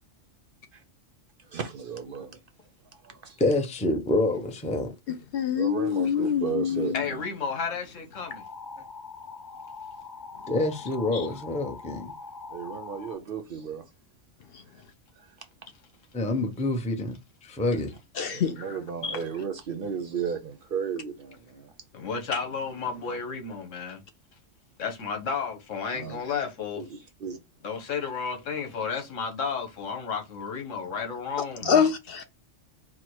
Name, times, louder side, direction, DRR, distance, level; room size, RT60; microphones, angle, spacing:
voice 1, 1.5-2.4 2.9-3.4 5.5-7.2 12.5-13.9 15.2-15.4 18.3-21.7 25.9-26.4 26.8-27.4 31.6-31.8, right 7 dB, 60° right, 0.6 m, -35 dB
voice 2, 3.4-4.9 10.5-12.1 16.1-17.9, left 2 dB, 10° left, 0.4 m, -27 dB
voice 3, 5.1-7.0 11.1-11.3 14.5-14.6 18.2-18.6 19.0-19.2 31.6-32.3, left 7 dB, 60° left, 0.7 m, -26 dB
voice 4, 6.9-8.4 21.9-24.0 24.8-26.8 27.6-31.7, left 5 dB, 85° left, 1.4 m, -32 dB
sound 1, 8.1-13.1, left 4 dB, 40° left, 1.0 m, -42 dB
4.5 x 2.1 x 4.5 m
omnidirectional pair, 1.3 m